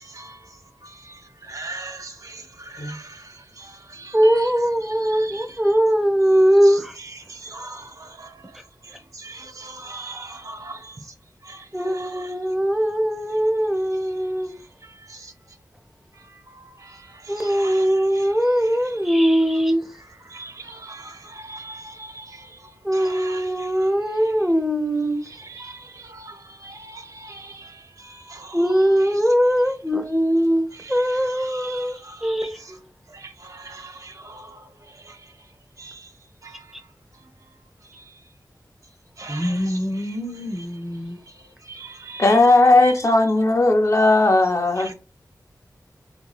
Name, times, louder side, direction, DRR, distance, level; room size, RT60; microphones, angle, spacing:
voice 1, 0.0-4.5 4.8-5.6 6.6-11.1 11.4-12.3 14.0-15.6 16.1-19.0 20.2-23.9 24.1-24.3 25.2-29.2 30.7-32.8 33.1-35.5 35.8-36.1 36.4-37.3 37.8-38.2 39.2-40.7 41.3-43.1 44.8-44.9, right 2 dB, 50° right, 0.6 m, -41 dB
voice 2, 4.1-7.0 11.7-14.5 17.3-19.9 22.8-25.2 28.5-32.8 39.3-41.2, equal, 5° right, 0.7 m, -21 dB
voice 3, 42.2-44.9, left 2 dB, 45° left, 0.7 m, -16 dB
3.0 x 2.3 x 3.9 m
wide cardioid pair, 65°, 7 cm